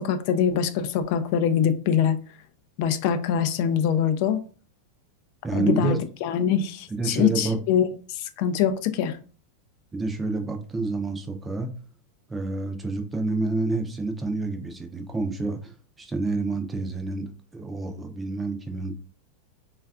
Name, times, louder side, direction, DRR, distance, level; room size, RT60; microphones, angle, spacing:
voice 1, 0.0-2.2 2.8-4.4 5.5-9.2, left 8 dB, 55° left, 0.3 m, -24 dB
voice 2, 5.4-6.0 6.9-7.6 9.9-11.7 12.3-18.9, right 3 dB, 15° right, 0.5 m, -28 dB
3.3 x 2.3 x 2.3 m
supercardioid pair, 125°, 0 cm